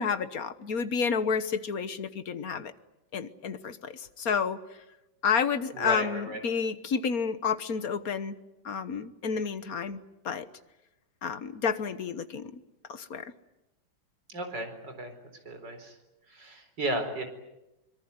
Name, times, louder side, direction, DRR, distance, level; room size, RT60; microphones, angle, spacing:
voice 1, 0.0-2.7 3.1-4.6 5.2-8.3 8.6-10.0 10.2-10.5 11.2-12.6 12.9-13.3, left 6 dB, 50° left, 12 dB, 1.5 m, -30 dB
voice 2, 5.7-6.4 14.3-15.1 15.4-15.9 16.3-17.2, right 1 dB, 55° right, 7 dB, 4.9 m, -34 dB
25.0 x 23.0 x 9.6 m, 0.96 s
omnidirectional pair, 2.2 m